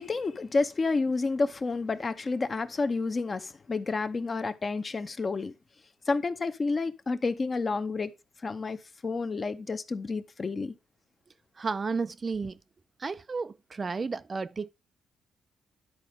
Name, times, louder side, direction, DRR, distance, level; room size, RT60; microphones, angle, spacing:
voice 1, 0.0-5.5 6.1-8.1 8.4-8.8 9.0-10.7, left 3 dB, 35° left, 0.8 m, -30 dB
voice 2, 11.6-12.6 13.0-14.7, right 4 dB, 35° right, 0.4 m, -32 dB
10.5 x 4.2 x 4.8 m
cardioid pair, 90°, 0 cm